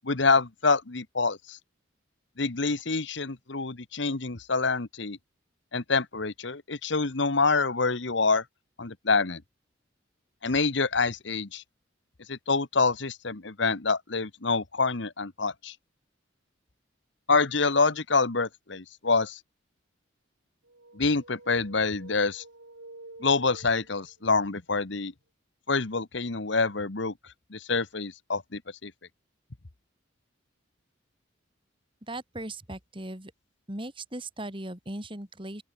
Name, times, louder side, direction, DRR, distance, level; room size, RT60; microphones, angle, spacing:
voice 1, 0.0-1.6 2.4-5.2 5.7-8.4 8.8-9.4 10.4-11.6 12.3-15.7 17.3-19.4 20.9-22.4 23.2-25.1 25.7-27.1 27.5-28.9, left 4 dB, 65° left, 1.3 m, -26 dB
sound 1, 20.6-24.3, right 2 dB, 80° right, 4.4 m, -49 dB
voice 2, 32.1-33.3 33.7-35.6, right 1 dB, 25° right, 3.5 m, -38 dB
open air
head